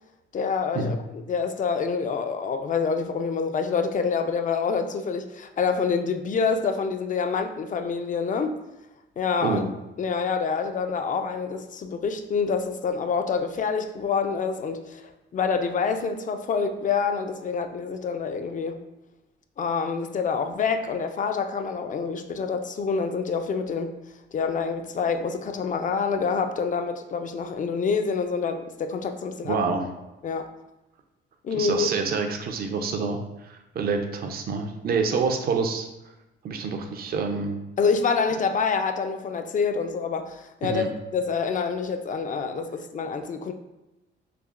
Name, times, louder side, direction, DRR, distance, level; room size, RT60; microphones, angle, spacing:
voice 1, 0.3-8.6 9.2-9.6 10.0-18.8 19.6-24.0 24.3-29.6 30.2-30.5 31.4-31.9 37.8-43.5, left 5 dB, 40° left, 7 dB, 0.4 m, -27 dB
voice 2, 29.4-29.9 31.5-35.9 36.4-37.6 40.6-40.9, right 4 dB, 50° right, 4 dB, 0.5 m, -27 dB
5.7 x 2.1 x 2.4 m, 0.99 s
cardioid pair, 90°, 20 cm